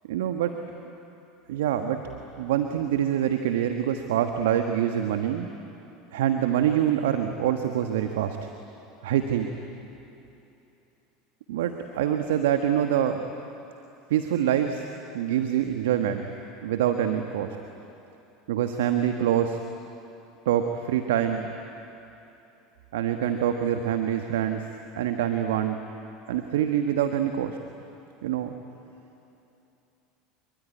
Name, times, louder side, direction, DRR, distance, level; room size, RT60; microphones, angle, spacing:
voice 1, 0.1-0.6 1.5-2.0 2.4-5.5 6.1-8.5 9.0-9.5 11.5-13.3 14.1-14.8 15.1-16.2 16.6-17.6 18.5-19.6 20.4-21.5 22.9-24.7 24.9-25.8 26.3-27.6 28.2-28.5, right 10 dB, 75° right, 6 dB, 1.3 m, -25 dB
25.5 x 23.0 x 9.5 m, 2.9 s
hypercardioid pair, 80°, 0 cm